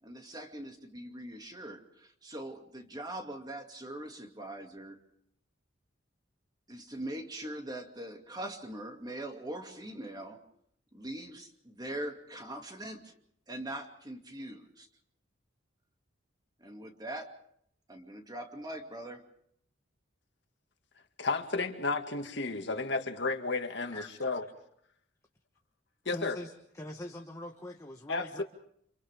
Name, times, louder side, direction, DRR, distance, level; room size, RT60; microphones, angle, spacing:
voice 1, 0.0-5.0 6.7-10.4 10.9-13.1 13.5-14.9 16.6-17.4 17.9-19.3, right 1 dB, 20° right, 2.4 m, -42 dB
voice 2, 21.2-24.4 26.1-26.4 28.1-28.4, left 3 dB, 65° left, 2.1 m, -32 dB
voice 3, 26.1-28.4, left 1 dB, 15° left, 1.2 m, -43 dB
29.5 x 27.5 x 3.6 m
head